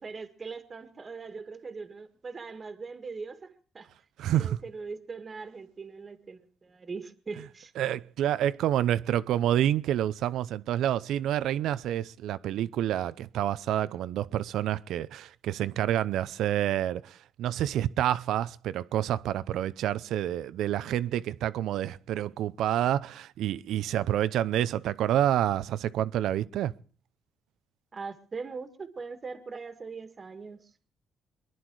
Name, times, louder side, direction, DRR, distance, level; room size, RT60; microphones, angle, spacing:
voice 1, 0.0-3.9 4.3-7.7 27.9-30.7, right 4 dB, 35° right, 1.8 m, -41 dB
voice 2, 4.2-4.6 7.8-26.7, right 11 dB, 80° right, 0.7 m, -28 dB
23.5 x 11.0 x 4.7 m
cardioid pair, 90°, 0 cm